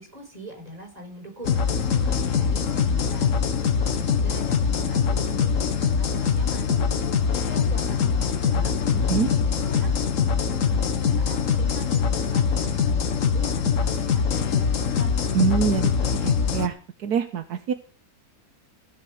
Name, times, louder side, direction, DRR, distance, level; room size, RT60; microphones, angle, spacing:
voice 1, 0.0-1.6 1.9-3.3 3.8-6.7 7.3-15.1, equal, 25° right, 1 dB, 5.7 m, -41 dB
sound 1, 1.4-16.7, left 6 dB, 55° left, 1.4 m, -23 dB
voice 2, 15.3-15.9 16.2-17.7, right 7 dB, 75° right, 9 dB, 1.4 m, -25 dB
16.0 x 6.7 x 7.8 m, 0.39 s
omnidirectional pair, 1.7 m